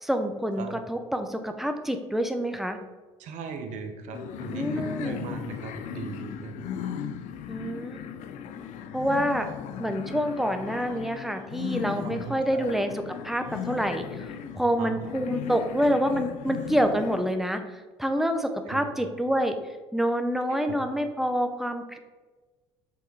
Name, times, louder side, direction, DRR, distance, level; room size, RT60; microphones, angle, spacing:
voice 1, 0.0-2.8 4.5-5.2 7.5-8.0 8.9-9.5 9.8-19.6 19.9-22.0, equal, ahead, 7 dB, 0.7 m, -27 dB
voice 2, 3.2-6.5 12.0-12.6 14.8-14.9 18.6-18.8 20.5-20.7, right 5 dB, 65° right, 5 dB, 0.9 m, -38 dB
sound 1, 4.1-17.3, left 8 dB, 65° left, 0.5 m, -37 dB
5.7 x 3.5 x 4.8 m, 1.3 s
supercardioid pair, 70°, 13 cm